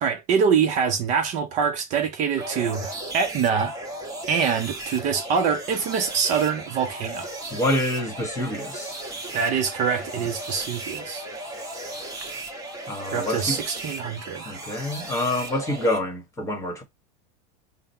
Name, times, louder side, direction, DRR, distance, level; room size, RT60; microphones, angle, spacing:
voice 1, 0.0-3.7 4.3-7.3 9.3-11.3 13.1-14.5, right 6 dB, 40° right, 0.5 m, -24 dB
sound 1, 2.4-16.0, right 2 dB, 20° right, 1.0 m, -36 dB
voice 2, 7.5-9.0 12.9-13.6 14.5-16.8, left 1 dB, 15° left, 1.2 m, -27 dB
3.7 x 2.0 x 4.2 m
supercardioid pair, 130°, 19 cm